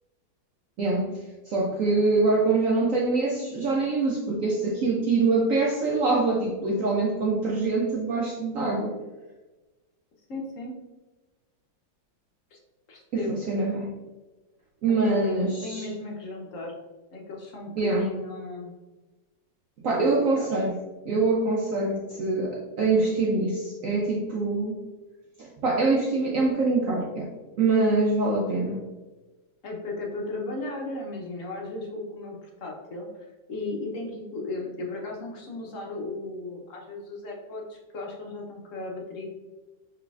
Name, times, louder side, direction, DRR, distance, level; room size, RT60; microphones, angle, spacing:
voice 1, 0.8-9.0 13.1-13.9 14.8-15.9 17.8-18.1 19.8-20.7 21.0-24.8 25.4-27.3 27.6-28.8, right 3 dB, 70° right, -2 dB, 0.7 m, -24 dB
voice 2, 1.6-2.4 10.3-10.8 12.5-12.6 12.9-13.4 15.0-16.7 17.1-18.7 19.9-20.7 29.6-39.3, left 2 dB, 60° left, -1 dB, 0.9 m, -36 dB
5.9 x 3.3 x 2.3 m, 1.2 s
omnidirectional pair, 2.0 m